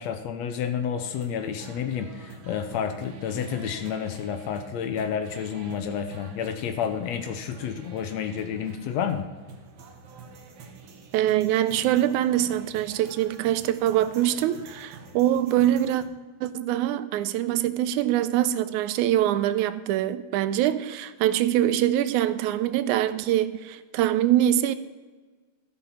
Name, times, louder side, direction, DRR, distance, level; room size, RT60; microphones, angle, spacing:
voice 1, 0.0-9.3, left 8 dB, 75° left, 8 dB, 1.8 m, -30 dB
sound 1, 1.1-16.0, right 4 dB, 55° right, 1.9 m, -47 dB
voice 2, 11.1-16.0 16.4-24.7, right 12 dB, 85° right, 13 dB, 2.0 m, -24 dB
14.0 x 5.8 x 5.8 m, 1.4 s
omnidirectional pair, 3.4 m